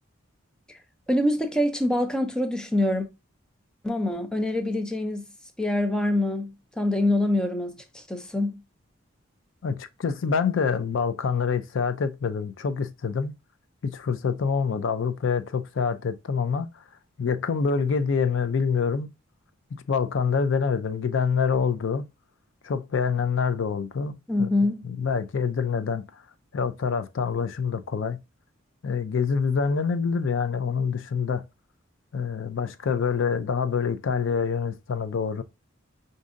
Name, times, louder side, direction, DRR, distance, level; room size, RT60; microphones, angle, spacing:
voice 1, 1.1-3.1 3.8-5.3 5.6-8.6 24.3-24.9, left 1 dB, 5° left, 0.4 m, -25 dB
voice 2, 9.6-13.4 13.8-16.8 17.2-19.1 19.9-22.1 22.6-24.5 24.8-26.1 26.5-28.2 28.8-31.4 32.1-35.4, left 5 dB, 65° left, 0.4 m, -26 dB
5.0 x 2.6 x 2.5 m
head